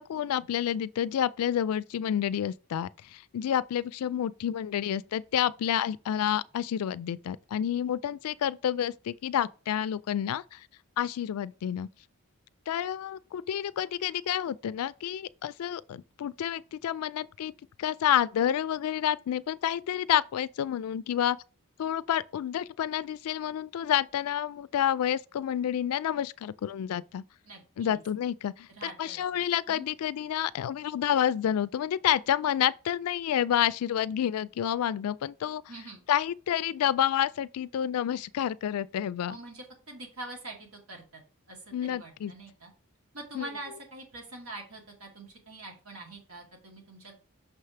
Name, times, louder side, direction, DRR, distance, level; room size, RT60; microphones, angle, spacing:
voice 1, 0.0-10.6 11.0-11.9 12.7-17.5 17.8-21.4 21.8-27.2 27.8-35.6 36.1-39.4 41.7-42.3 43.3-43.5, left 10 dB, 85° left, 0.3 m, -29 dB
voice 2, 27.4-28.0 28.7-29.2 29.7-29.8 35.7-36.0 39.3-41.2 41.5-42.7 43.1-47.1, right 2 dB, 80° right, 2.3 m, -44 dB
6.1 x 3.3 x 5.6 m
head